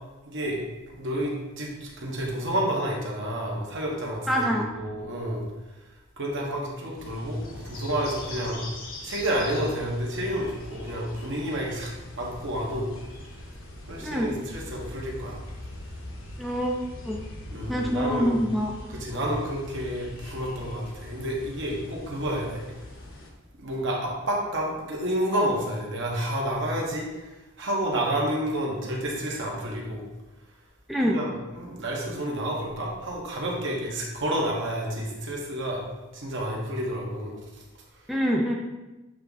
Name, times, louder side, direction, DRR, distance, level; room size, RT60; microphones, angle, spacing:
voice 1, 0.3-0.6 1.0-5.4 6.2-8.6 9.0-12.9 13.9-15.4 17.5-18.4 18.9-22.6 23.6-27.1 27.6-30.0 31.0-35.8 36.1-37.3, right 1 dB, 60° right, -2 dB, 1.4 m, -30 dB
voice 2, 4.3-4.7 14.0-14.3 16.4-16.8 17.1-17.2 17.7-18.7 30.9-31.2 38.1-38.5, equal, ahead, -2 dB, 0.4 m, -25 dB
sound 1, 7.0-23.3, left 1 dB, 70° left, 1.3 m, -42 dB
7.6 x 3.6 x 4.0 m, 1.1 s
head